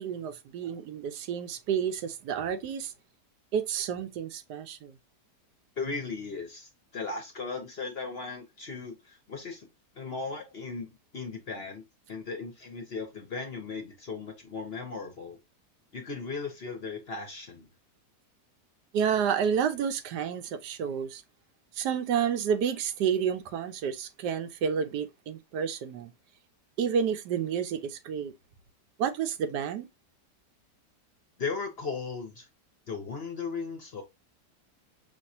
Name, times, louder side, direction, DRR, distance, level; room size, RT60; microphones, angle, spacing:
voice 1, 0.0-2.9 3.5-5.0 18.9-21.2 21.7-26.1 26.8-28.3 29.0-29.9, right 7 dB, 80° right, 1.2 m, -30 dB
voice 2, 5.8-9.7 9.9-15.4 15.9-17.7 31.4-32.5 32.9-34.0, left 4 dB, 50° left, 0.8 m, -37 dB
5.2 x 3.1 x 2.7 m
omnidirectional pair, 1.8 m